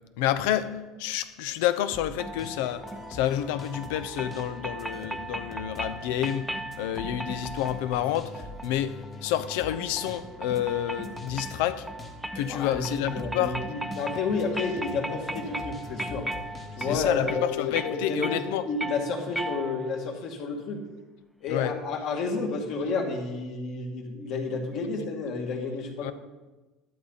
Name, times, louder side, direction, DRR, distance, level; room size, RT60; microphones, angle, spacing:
voice 1, 0.2-11.9 12.3-13.6 16.8-18.7 21.5-21.7 26.0-26.1, left 11 dB, 80° left, 0.7 m, -29 dB
sound 1, 1.9-17.3, left 3 dB, 25° left, 1.5 m, -44 dB
sound 2, 2.2-20.1, right 1 dB, 5° right, 0.4 m, -38 dB
voice 2, 12.5-16.3 16.8-18.3 18.7-20.8 21.4-26.1, left 4 dB, 50° left, 2.2 m, -31 dB
12.5 x 12.0 x 4.0 m
cardioid pair, 155°, 0 cm